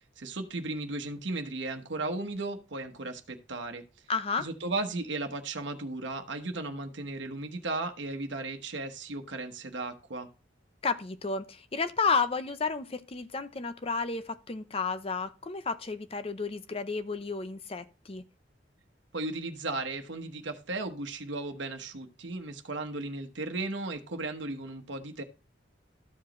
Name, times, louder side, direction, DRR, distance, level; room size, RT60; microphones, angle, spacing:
voice 1, 0.2-3.8 4.4-10.3 19.1-25.2, right 2 dB, 85° right, 1.1 m, -35 dB
voice 2, 4.1-4.5 10.8-18.2, left 4 dB, 30° left, 0.6 m, -32 dB
14.0 x 5.0 x 3.0 m
head